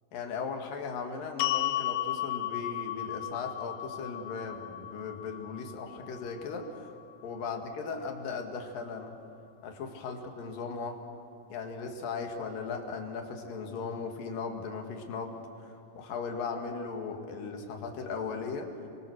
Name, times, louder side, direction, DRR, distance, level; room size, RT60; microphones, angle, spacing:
voice 1, 0.1-7.0 7.2-9.2 9.6-11.0 11.5-18.7, left 5 dB, 60° left, 3 dB, 3.2 m, -37 dB
sound 1, 1.4-7.6, left 15 dB, 90° left, 2.1 m, -35 dB
28.0 x 23.0 x 6.5 m, 2.7 s
omnidirectional pair, 5.1 m